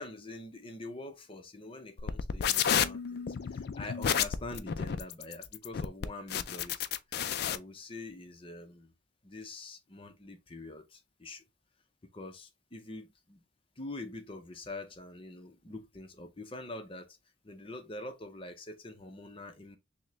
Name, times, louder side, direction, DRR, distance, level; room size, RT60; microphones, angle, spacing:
voice 1, 0.0-8.9 9.2-11.4 12.1-13.4 13.8-17.2 17.4-19.8, left 2 dB, 30° left, 0.7 m, -45 dB
sound 1, 2.0-7.6, left 8 dB, 60° left, 0.4 m, -31 dB
6.1 x 2.2 x 3.0 m
head